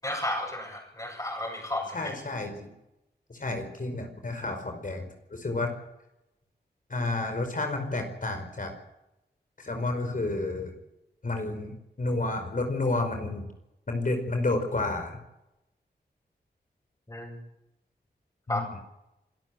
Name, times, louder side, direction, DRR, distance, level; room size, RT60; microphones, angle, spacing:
voice 1, 0.0-2.0 17.1-17.4 18.5-18.6, left 1 dB, 20° left, -5 dB, 7.7 m, -32 dB
voice 2, 1.9-2.7 3.3-5.7 6.9-8.7 9.6-10.7 11.2-13.5 13.9-15.2 18.5-18.8, left 2 dB, 50° left, 5 dB, 5.0 m, -30 dB
26.5 x 12.5 x 9.3 m, 0.89 s
cardioid pair, 60°, 18 cm